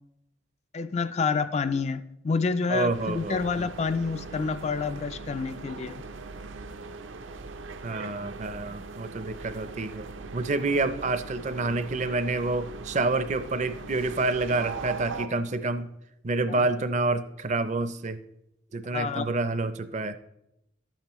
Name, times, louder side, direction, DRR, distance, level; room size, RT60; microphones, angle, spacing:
voice 1, 0.7-6.0 16.6-16.7 18.9-19.3, left 4 dB, 35° left, 11 dB, 0.3 m, -28 dB
voice 2, 2.7-3.7 7.8-10.1 10.3-15.9 16.2-18.2 18.7-20.2, right 3 dB, 35° right, 12 dB, 0.5 m, -28 dB
sound 1, 2.9-15.3, right 4 dB, 85° right, 0.6 m, -40 dB
12.0 x 8.9 x 3.0 m, 0.81 s
head